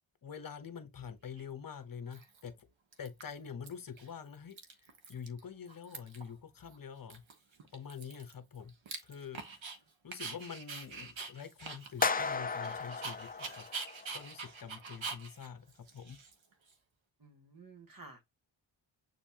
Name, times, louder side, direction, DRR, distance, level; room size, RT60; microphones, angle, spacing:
voice 1, 0.2-2.7 3.0-4.6 5.1-7.2 7.7-8.7 9.0-9.4 10.0-13.7 14.1-16.2, left 7 dB, 45° left, 0.9 m, -46 dB
Dog, 1.4-1.5 2.1-2.6 2.9-3.7 4.0-4.1 4.3-5.4 5.7-6.3 6.7-6.8 7.1-9.8 10.1-16.7, right 4 dB, 70° right, 1.2 m, -45 dB
sound 1, 12.0-14.2, left 4 dB, 20° left, 0.3 m, -35 dB
voice 2, 17.2-18.2, right 3 dB, 45° right, 1.5 m, -53 dB
6.8 x 2.6 x 2.8 m
wide cardioid pair, 90°, 47 cm